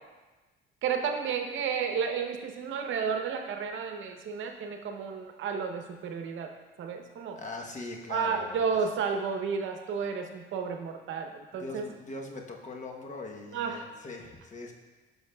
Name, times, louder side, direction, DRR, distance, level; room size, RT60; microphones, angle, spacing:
voice 1, 0.8-7.4 8.1-11.9 13.5-13.8, right 6 dB, 75° right, 4 dB, 0.8 m, -32 dB
voice 2, 7.3-8.8 11.6-14.7, left 3 dB, 40° left, 1 dB, 1.0 m, -41 dB
10.5 x 6.1 x 2.3 m, 1.2 s
cardioid pair, 90°, 20 cm